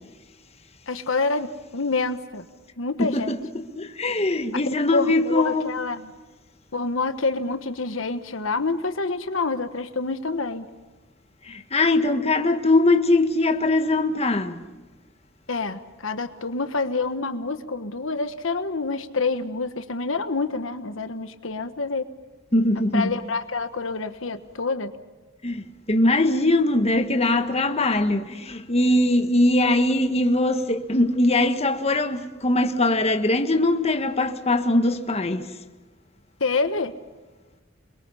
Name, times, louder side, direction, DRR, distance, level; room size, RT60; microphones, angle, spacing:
voice 1, 0.9-2.4 2.8-3.3 4.9-6.1 6.7-10.7 15.5-22.1 22.9-24.9 36.4-36.9, left 3 dB, 85° left, 1.4 m, -27 dB
voice 2, 3.0-5.7 11.4-14.6 22.5-23.1 25.4-35.5, left 2 dB, 30° left, 1.6 m, -21 dB
28.5 x 22.5 x 5.7 m
head